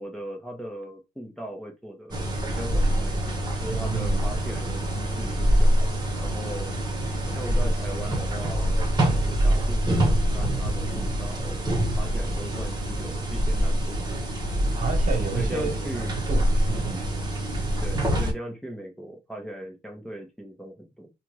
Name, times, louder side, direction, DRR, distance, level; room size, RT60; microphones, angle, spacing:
voice 1, 0.0-5.8 6.2-6.7 7.3-8.8 9.1-14.0 15.3-16.2 17.8-21.1, equal, 5° left, 1.1 m, -39 dB
sound 1, 2.1-18.3, right 1 dB, 25° right, 1.2 m, -25 dB
voice 2, 3.7-4.3 14.8-17.1, right 5 dB, 50° right, 1.2 m, -31 dB
3.6 x 2.4 x 3.0 m
cardioid pair, 110°, 17 cm